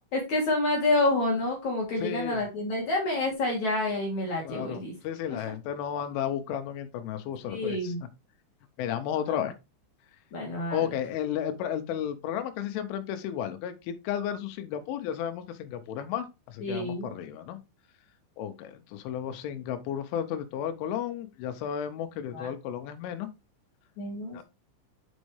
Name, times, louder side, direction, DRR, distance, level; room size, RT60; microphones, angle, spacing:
voice 1, 0.1-4.9 5.3-5.4 7.5-8.0 9.3-9.4 10.3-10.8 16.6-17.1 22.3-22.5 24.0-24.4, left 2 dB, 55° left, 2.1 m, -28 dB
voice 2, 2.0-2.4 4.4-7.9 8.8-9.5 10.7-17.6 18.4-23.3 24.3-24.4, left 9 dB, 85° left, 3.1 m, -33 dB
7.1 x 5.3 x 3.2 m
omnidirectional pair, 5.8 m